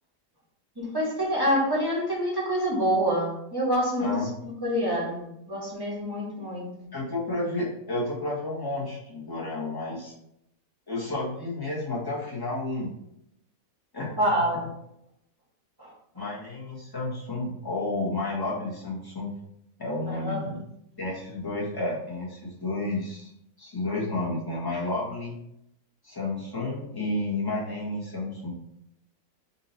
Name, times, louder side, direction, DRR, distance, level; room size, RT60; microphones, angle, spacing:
voice 1, 0.8-6.7 14.2-14.7 15.8-15.9 20.0-20.6, equal, 15° right, -5 dB, 1.2 m, -27 dB
voice 2, 4.0-4.3 6.9-10.1 10.9-12.9 13.9-14.1 16.1-19.3 19.8-20.6 21.0-23.3 23.6-25.4 26.0-28.6, left 2 dB, 15° left, -6 dB, 1.1 m, -31 dB
4.2 x 2.7 x 4.0 m, 0.78 s
omnidirectional pair, 1.6 m